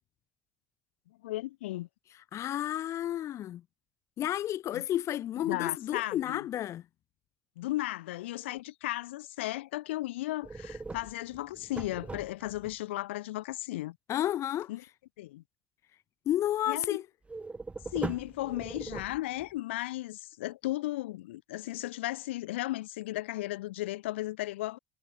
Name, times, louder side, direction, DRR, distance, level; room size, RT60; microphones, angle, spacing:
voice 1, 1.2-1.9 4.7-4.8 5.4-6.4 7.6-14.0 14.7-14.8 15.2-15.4 16.7-17.0 17.9-24.8, left 17 dB, 70° left, 7.2 m, -35 dB
voice 2, 2.3-3.6 4.2-6.8 14.1-14.7 16.3-17.0, left 12 dB, 45° left, 4.4 m, -31 dB
sound 1, 10.4-12.7 17.3-19.6, right 3 dB, 20° right, 4.5 m, -40 dB
figure-of-eight pair, 55°, 7 cm